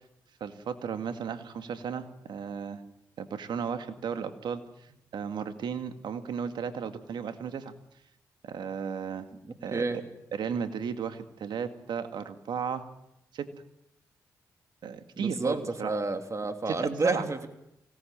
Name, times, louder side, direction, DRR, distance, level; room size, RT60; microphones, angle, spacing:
voice 1, 0.4-2.8 3.2-4.6 5.1-7.7 8.4-9.3 9.6-9.8 10.3-12.8 13.3-13.5 14.8-15.9 16.7-16.8 17.0-17.3, right 7 dB, 70° right, 9 dB, 2.0 m, -34 dB
voice 2, 9.5-10.0 15.2-17.5, right 3 dB, 40° right, 7 dB, 3.1 m, -30 dB
25.0 x 18.0 x 7.5 m, 0.83 s
supercardioid pair, 45°, 8 cm